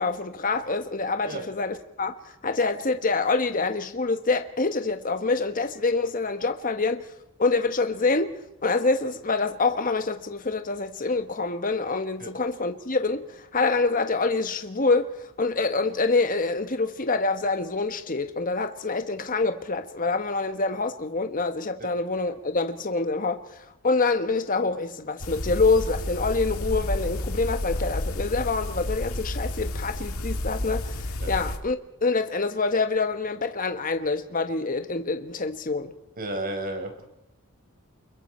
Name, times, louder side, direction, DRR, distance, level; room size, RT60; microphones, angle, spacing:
voice 1, 0.0-2.1 2.4-7.1 7.4-31.0 31.3-35.9, left 3 dB, 40° left, 1.3 m, -26 dB
sound 1, 25.2-31.6, left 1 dB, 75° left, 2.1 m, -31 dB
voice 2, 36.2-37.1, right 1 dB, 40° right, 4.5 m, -33 dB
29.5 x 22.0 x 4.5 m
head